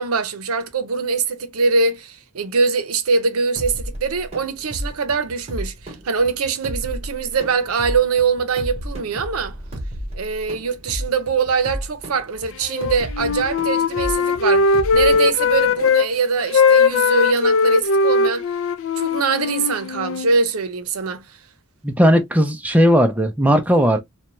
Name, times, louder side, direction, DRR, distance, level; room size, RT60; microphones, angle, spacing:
voice 1, 0.0-9.6 10.1-18.4 19.0-21.2, right 4 dB, 85° right, 0.6 m, -22 dB
sound 1, 3.6-15.9, equal, 30° right, 1.0 m, -33 dB
Wind instrument woodwind instrument, 12.7-16.1 16.4-20.3, left 4 dB, 65° left, 0.4 m, -19 dB
voice 2, 21.8-24.0, equal, 5° right, 0.4 m, -16 dB
2.6 x 2.2 x 2.9 m
head